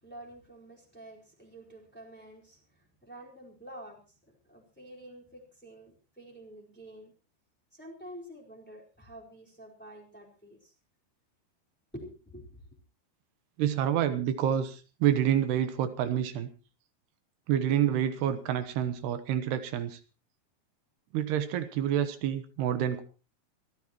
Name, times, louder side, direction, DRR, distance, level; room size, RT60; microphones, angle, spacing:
voice 1, 0.0-4.0 4.4-7.1 7.7-10.7 11.9-12.6, right 1 dB, 5° left, -2 dB, 3.9 m, -48 dB
voice 2, 13.6-16.5 17.5-20.0 21.1-23.0, right 10 dB, 85° right, 10 dB, 3.1 m, -28 dB
25.5 x 14.5 x 3.0 m, 0.34 s
omnidirectional pair, 4.7 m